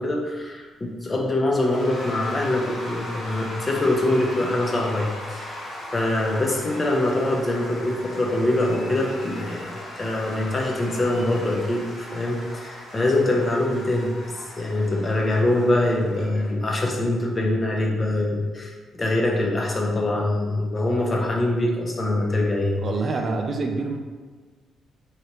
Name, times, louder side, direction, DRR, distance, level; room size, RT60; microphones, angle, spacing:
voice 1, 0.0-5.6 5.9-14.2 14.6-22.8, left 1 dB, 25° left, -1 dB, 0.5 m, -24 dB
Cheering / Applause / Crowd, 1.6-17.2, left 1 dB, 90° left, 1.3 m, -38 dB
voice 2, 22.8-24.0, right 3 dB, 45° right, 4 dB, 0.3 m, -26 dB
3.2 x 2.7 x 2.9 m, 1.4 s
cardioid pair, 120°, 0 cm